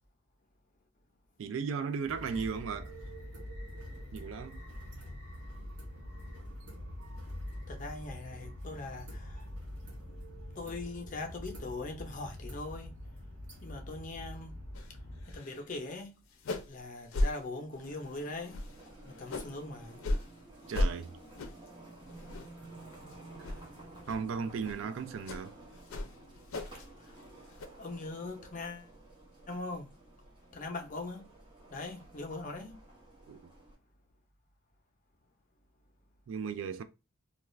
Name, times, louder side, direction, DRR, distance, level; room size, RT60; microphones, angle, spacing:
voice 1, 1.4-2.9 4.1-4.7 20.7-21.2 23.4-23.5 24.1-25.5 33.3-33.4 36.3-36.8, right 6 dB, 65° right, 0.3 m, -36 dB
sound 1, 2.0-15.4, equal, 90° right, 1.0 m, -45 dB
voice 2, 7.7-9.4 10.6-12.9 13.6-14.5 15.3-16.1 16.7-18.6 19.1-20.0 27.8-28.9 29.5-29.9 30.5-31.2 31.7-32.7, left 2 dB, 40° left, 0.6 m, -41 dB
sound 2, 14.7-14.9 15.2-15.7 15.9-16.0 16.3-16.8 17.1-17.3 17.8-18.1 18.5-19.6 20.0-20.3 20.7-20.9 21.4-21.7 22.1-22.7 22.9-23.1 23.4-23.6 24.1-24.2 24.6-24.8 25.3-25.4 25.9-26.9 27.2-27.7, left 1 dB, 90° left, 0.5 m, -34 dB
sound 3, 17.7-33.8, right 2 dB, 25° right, 0.8 m, -53 dB
2.3 x 2.3 x 3.1 m
head